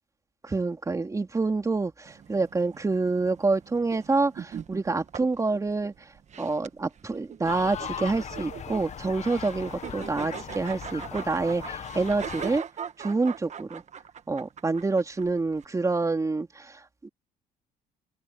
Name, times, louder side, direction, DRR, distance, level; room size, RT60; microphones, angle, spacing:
voice 1, 0.4-6.1 6.4-12.6 13.0-13.8 14.3-17.1, right 3 dB, 20° right, 3.0 m, -27 dB
sound 1, 2.1-15.7, right 8 dB, 45° right, 1.5 m, -42 dB
sound 2, 7.4-12.6, left 8 dB, 45° left, 1.7 m, -38 dB
cardioid pair, 110°, 17 cm